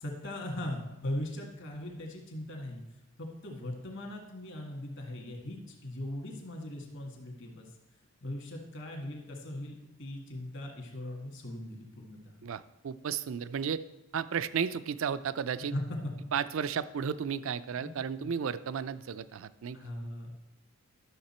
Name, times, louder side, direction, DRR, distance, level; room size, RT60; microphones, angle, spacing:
voice 1, 0.0-2.8 3.2-7.7 8.2-12.4 15.6-15.8 17.8-17.9 18.2-18.3 19.7-20.3, left 1 dB, 55° left, 1 dB, 1.8 m, -39 dB
voice 2, 12.4-13.8 14.1-15.7 16.3-19.8, right 7 dB, 60° right, 14 dB, 0.4 m, -33 dB
11.5 x 6.6 x 4.3 m, 0.95 s
head